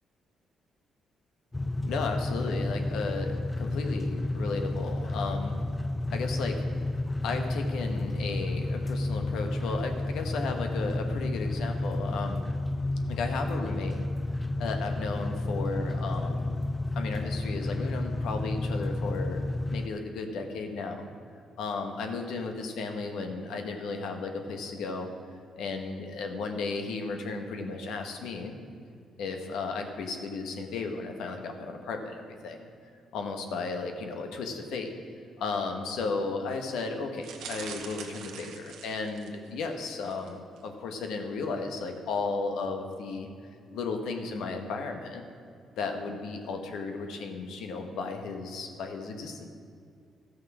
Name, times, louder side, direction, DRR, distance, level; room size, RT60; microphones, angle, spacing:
sound 1, 1.5-19.9, left 2 dB, 15° left, 0.3 m, -31 dB
voice 1, 1.8-5.6 6.1-6.7 7.2-12.5 13.1-14.0 14.6-16.5 16.9-19.5 19.7-21.1 21.6-25.1 25.6-28.6 29.2-32.7 33.1-34.9 35.4-40.4 40.6-43.3 43.7-45.2 45.8-49.5, left 4 dB, 85° left, 4 dB, 1.2 m, -34 dB
sound 2, 37.2-39.5 40.0-40.3 40.6-40.7, right 6 dB, 85° right, 1.1 m, -43 dB
13.5 x 6.5 x 6.1 m, 2.2 s
cardioid pair, 90°, 0 cm